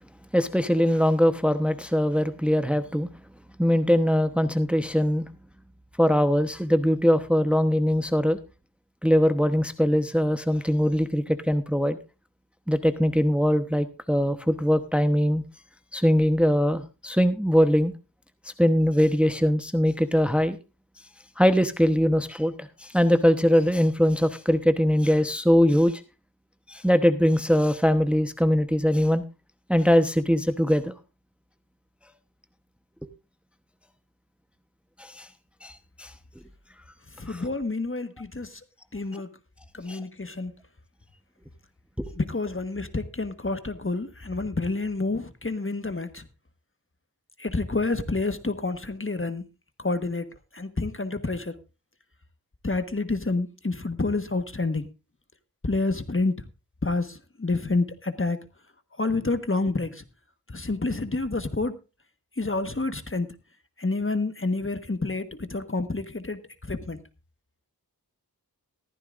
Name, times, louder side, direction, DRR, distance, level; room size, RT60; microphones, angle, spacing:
voice 1, 0.3-3.1 3.6-5.3 6.0-8.4 9.0-12.0 12.7-15.4 15.9-17.9 18.4-20.6 21.4-26.0 26.7-29.2 29.7-30.9 35.0-35.3 35.6-36.1 37.3-37.4 39.9-40.0 42.0-42.1, equal, 5° right, 1.0 m, -22 dB
voice 2, 37.2-38.6 38.9-39.3 39.7-40.5 42.1-46.3 47.4-49.5 49.8-50.3 50.5-51.6 52.6-54.9 55.6-56.4 56.8-58.4 59.0-60.0 60.5-61.8 62.4-63.3 63.8-67.0, left 3 dB, 35° left, 1.4 m, -28 dB
15.0 x 14.0 x 2.5 m
wide cardioid pair, 40°, 38 cm